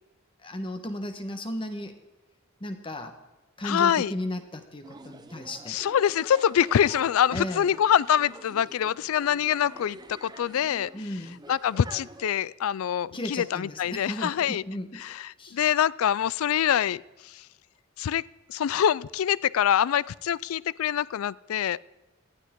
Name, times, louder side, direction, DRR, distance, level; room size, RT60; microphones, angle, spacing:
voice 1, 0.4-2.0 2.6-3.1 3.6-5.8 7.3-7.7 10.9-11.4 13.1-15.0 15.4-15.6, left 1 dB, 25° left, 7 dB, 1.2 m, -35 dB
voice 2, 3.6-4.1 5.7-10.9 11.5-14.6 15.0-17.5 18.0-18.2 18.5-21.8, left 9 dB, 80° left, 22 dB, 0.3 m, -25 dB
sound 1, 4.8-12.3, right 2 dB, 20° right, 0.7 m, -47 dB
18.5 x 12.5 x 3.7 m, 1.1 s
head